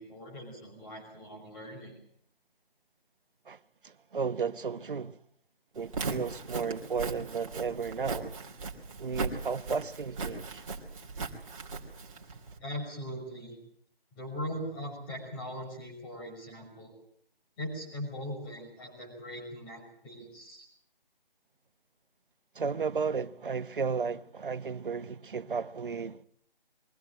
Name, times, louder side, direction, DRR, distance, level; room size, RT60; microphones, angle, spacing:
voice 1, 0.0-2.0 12.6-13.6 14.1-16.9 17.6-20.6, equal, 10° left, 5.9 m, -40 dB
voice 2, 3.8-5.2 5.7-8.4 9.0-10.6 22.5-26.2, right 5 dB, 60° right, 1.1 m, -34 dB
Walk footsteps, 5.8-12.6, right 4 dB, 35° right, 3.0 m, -38 dB
23.0 x 16.0 x 9.0 m
hypercardioid pair, 170°, 30 cm